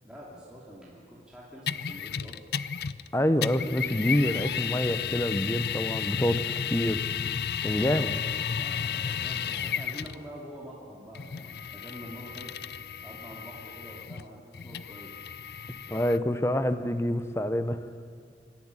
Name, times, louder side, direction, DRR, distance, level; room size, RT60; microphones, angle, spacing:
voice 1, 0.0-2.4 8.5-12.5 13.0-15.4, equal, 5° right, -6 dB, 2.7 m, -46 dB
sound 1, 1.7-3.1 3.4-10.2 11.1-16.2, left 8 dB, 60° left, 0.5 m, -33 dB
voice 2, 3.1-7.0 7.6-8.2 15.9-17.8, left 1 dB, 15° left, 11 dB, 0.8 m, -27 dB
25.5 x 11.5 x 9.7 m, 2.2 s
head